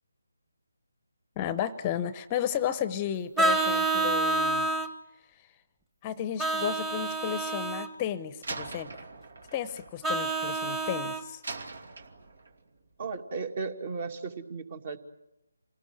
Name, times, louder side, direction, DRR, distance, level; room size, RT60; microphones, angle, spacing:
voice 1, 1.4-4.7 6.0-8.9 9.5-11.4, left 10 dB, 20° left, 14 dB, 0.8 m, -33 dB
Vehicle horn car horn honking, 3.4-4.9 6.4-7.9 10.0-11.2, right 2 dB, 10° right, 1.4 m, -28 dB
Slam, 8.4-10.9 11.4-12.7, right 3 dB, 70° right, 2.5 m, -42 dB
voice 2, 13.0-15.0, right 4 dB, 40° right, 9 dB, 2.3 m, -35 dB
27.5 x 18.5 x 9.3 m, 0.89 s
figure-of-eight pair, 155°, 0 cm